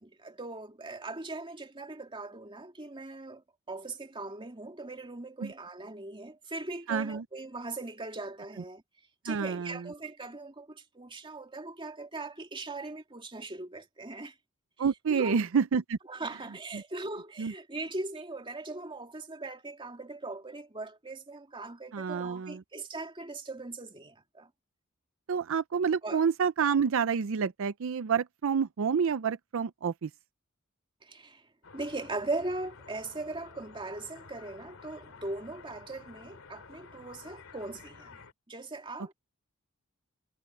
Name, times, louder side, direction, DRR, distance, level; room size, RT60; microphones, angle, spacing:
voice 1, 0.0-8.8 9.2-14.4 15.1-15.4 16.1-24.5 26.0-26.2 31.0-38.2 38.5-39.1, right 2 dB, 25° right, 2.4 m, -40 dB
voice 2, 6.9-7.2 9.3-9.9 14.8-16.0 16.7-16.8 17.4-17.5 21.9-22.6 25.3-30.1, right 6 dB, 65° right, 0.5 m, -28 dB
sound 1, 31.6-38.3, left 4 dB, 80° left, 2.3 m, -51 dB
head